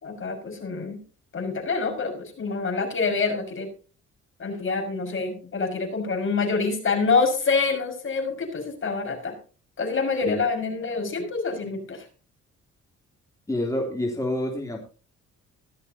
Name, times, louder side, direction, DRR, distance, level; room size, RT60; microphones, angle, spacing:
voice 1, 0.0-1.0 1.3-3.7 4.4-9.3 9.8-12.0, left 4 dB, 40° left, 4 dB, 5.8 m, -26 dB
voice 2, 13.5-14.8, left 1 dB, 10° left, 0 dB, 3.2 m, -27 dB
16.5 x 12.5 x 2.9 m, 0.35 s
cardioid pair, 90°, 30 cm